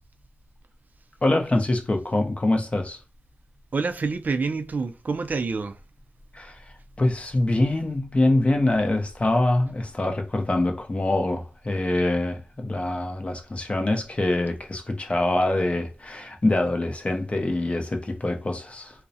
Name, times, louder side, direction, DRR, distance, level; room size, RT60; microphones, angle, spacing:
voice 1, 1.2-3.0 6.3-6.6 7.0-18.9, left 2 dB, 40° left, 0.6 m, -24 dB
voice 2, 3.7-5.8, right 4 dB, 60° right, 0.4 m, -27 dB
2.4 x 2.0 x 2.6 m
cardioid pair, 40°, 3 cm